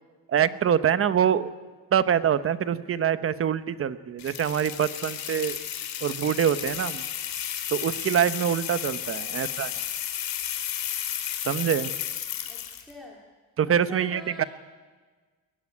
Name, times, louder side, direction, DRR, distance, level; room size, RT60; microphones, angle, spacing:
voice 1, 0.3-1.5 1.9-5.6 6.0-7.0 7.7-9.7 11.4-11.9 13.6-14.4, right 9 dB, 35° right, 13 dB, 0.9 m, -25 dB
sound 1, 4.2-12.9, left 10 dB, 65° left, 3.2 m, -33 dB
voice 2, 9.2-9.7 12.4-13.2 13.7-14.5, left 1 dB, ahead, -2 dB, 2.7 m, -45 dB
22.0 x 18.5 x 9.8 m, 1.4 s
cardioid pair, 145°, 37 cm